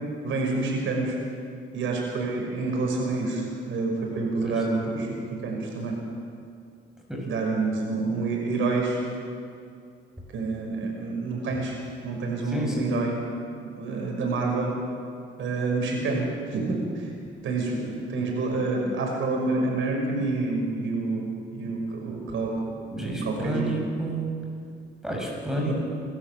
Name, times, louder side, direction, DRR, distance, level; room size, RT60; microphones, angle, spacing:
voice 1, 0.2-1.2 1.7-6.0 7.2-9.0 10.3-11.7 12.0-13.2 13.7-14.7 15.4-17.1 17.4-23.7 25.6-25.7, right 3 dB, 75° right, 0 dB, 6.0 m, -28 dB
voice 2, 12.5-12.8 22.9-24.3 25.0-25.7, right 1 dB, 5° right, -1 dB, 7.1 m, -30 dB
27.0 x 13.0 x 7.7 m, 2.3 s
cardioid pair, 90°, 20 cm